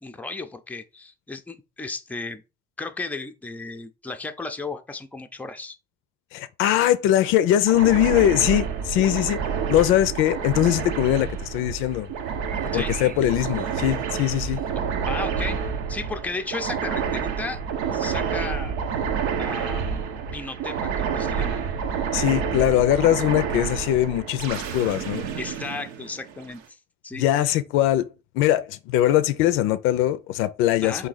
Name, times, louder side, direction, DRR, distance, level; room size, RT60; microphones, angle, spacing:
voice 1, 0.0-2.4 2.8-5.8 12.7-13.0 15.0-15.6 15.9-17.6 17.9-18.7 19.4-20.0 20.3-21.6 25.4-26.8 27.0-27.2 30.8-31.1, left 3 dB, 5° left, 0.5 m, -34 dB
voice 2, 6.3-9.4 9.7-12.1 12.7-14.6 22.1-25.2 27.2-28.1 28.3-31.1, left 13 dB, 75° left, 0.5 m, -21 dB
sound 1, 7.7-14.7, right 4 dB, 45° right, 0.8 m, -44 dB
sound 2, 7.7-26.5, right 7 dB, 80° right, 0.8 m, -29 dB
3.8 x 2.7 x 3.9 m
supercardioid pair, 90°, 21 cm